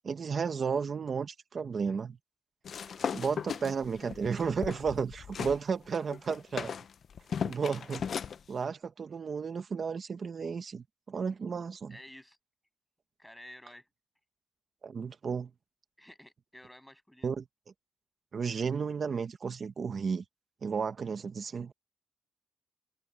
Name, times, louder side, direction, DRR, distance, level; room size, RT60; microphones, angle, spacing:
voice 1, 0.0-2.2 2.9-6.7 7.4-8.1 8.5-12.0 14.8-15.5 17.2-17.5 18.3-20.2 20.6-21.7, right 6 dB, 40° right, 1.5 m, -33 dB
sound 1, 2.6-5.6 5.9-8.4, left 7 dB, 50° left, 0.7 m, -37 dB
voice 2, 11.9-12.4 13.2-13.9 16.0-17.3, left 1 dB, 5° left, 7.9 m, -51 dB
open air
wide cardioid pair, 145°, 0 cm